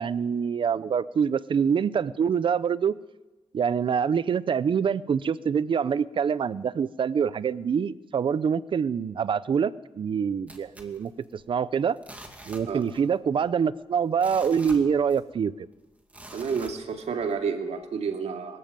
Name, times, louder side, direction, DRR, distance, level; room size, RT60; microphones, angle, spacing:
voice 1, 0.0-3.0 3.5-12.0 12.5-15.7, right 7 dB, 50° right, 17 dB, 0.6 m, -25 dB
sound 1, 10.5-11.6 12.0-13.2 13.4-13.5 14.0-15.5 16.1-17.3 17.8-17.9, right 1 dB, 15° right, 2.4 m, -46 dB
voice 2, 16.3-18.6, right 5 dB, 80° right, 5 dB, 2.4 m, -30 dB
23.0 x 14.5 x 9.1 m, 1.1 s
wide cardioid pair, 170°, 11 cm